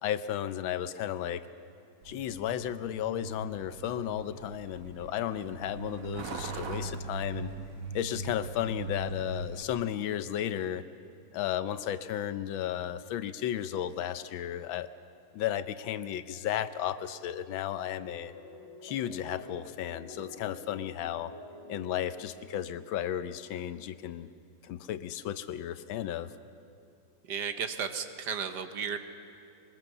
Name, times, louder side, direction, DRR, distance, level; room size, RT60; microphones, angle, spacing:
voice 1, 0.0-1.4 2.0-7.5 7.9-10.8 11.3-14.9 15.3-18.3 18.8-21.3 21.7-24.3 24.6-26.3, left 11 dB, 85° left, 12 dB, 1.5 m, -34 dB
Truck, 2.0-9.6, right 3 dB, 85° right, 2.0 m, -40 dB
sound 1, 18.0-23.2, left 2 dB, 40° left, 1.4 m, -49 dB
voice 2, 27.3-29.0, right 7 dB, 65° right, 8 dB, 1.5 m, -34 dB
21.5 x 20.5 x 6.8 m, 2.6 s
omnidirectional pair, 2.1 m